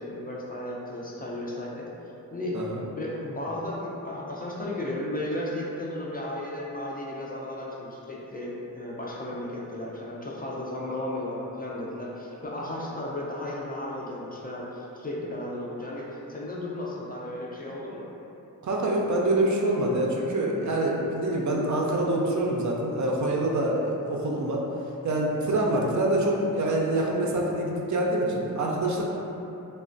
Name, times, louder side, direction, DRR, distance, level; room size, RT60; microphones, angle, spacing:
voice 1, 0.0-1.9 2.3-2.6 2.9-18.1, left 1 dB, 25° left, -5 dB, 0.4 m, -34 dB
voice 2, 18.6-24.6 25.0-29.0, right 1 dB, 55° right, -2 dB, 0.5 m, -25 dB
3.1 x 2.1 x 2.5 m, 3.0 s
cardioid pair, 60°, 35 cm